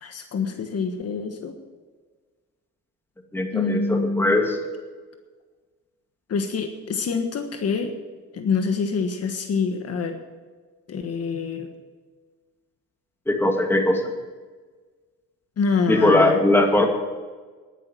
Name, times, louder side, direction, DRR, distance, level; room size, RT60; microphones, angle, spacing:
voice 1, 0.0-1.5 3.5-4.3 6.3-7.9 8.4-10.2 10.9-11.7 15.6-16.4, left 5 dB, 55° left, 6 dB, 1.4 m, -26 dB
voice 2, 3.3-4.6 13.3-14.1 15.9-16.9, left 1 dB, 5° left, 3 dB, 2.3 m, -20 dB
11.0 x 10.5 x 7.3 m, 1.4 s
cardioid pair, 90°, 30 cm